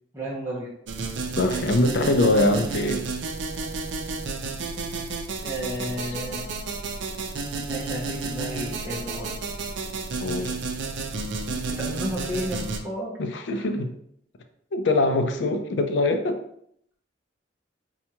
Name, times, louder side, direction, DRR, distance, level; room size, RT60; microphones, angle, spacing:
voice 1, 0.1-0.7 5.4-6.4 7.7-9.3 11.4-13.1 13.5-13.6, equal, 15° right, -5 dB, 0.7 m, -32 dB
sound 1, 0.9-12.8, right 3 dB, 85° right, 0.5 m, -31 dB
voice 2, 1.4-3.0 10.2-10.6 13.2-13.9 14.7-16.4, left 2 dB, 75° left, 6 dB, 0.4 m, -23 dB
4.3 x 2.3 x 2.8 m, 0.69 s
head